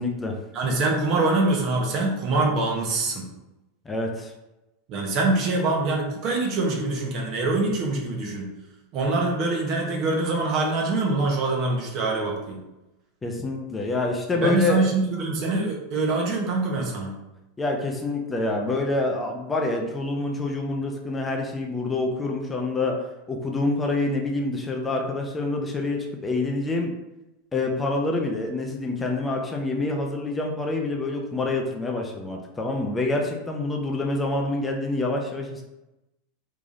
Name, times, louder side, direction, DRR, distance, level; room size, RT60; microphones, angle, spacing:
voice 1, 0.0-0.4 3.9-4.3 13.2-14.8 17.6-26.9 27.5-35.6, left 2 dB, 15° left, 1 dB, 0.6 m, -27 dB
voice 2, 0.5-3.3 4.9-8.5 8.9-12.6 14.3-17.2, right 3 dB, 45° right, 0 dB, 0.9 m, -24 dB
3.4 x 3.3 x 2.6 m, 0.96 s
hypercardioid pair, 85°, 0 cm